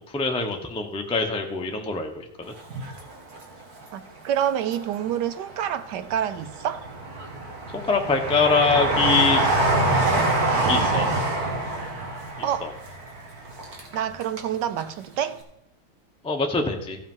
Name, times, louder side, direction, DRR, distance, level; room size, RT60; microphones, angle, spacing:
voice 1, 0.1-2.5 7.7-9.4 10.7-11.1 12.6-12.7 16.2-17.0, left 4 dB, 5° left, 0.5 m, -24 dB
Train, 2.6-3.8 4.3-5.2 5.8-14.5 14.8-14.9, right 2 dB, 50° right, 2.1 m, -25 dB
voice 2, 3.9-6.9 12.4-12.7 13.9-15.4, right 10 dB, 70° right, 1.1 m, -27 dB
14.5 x 5.3 x 5.5 m
omnidirectional pair, 2.2 m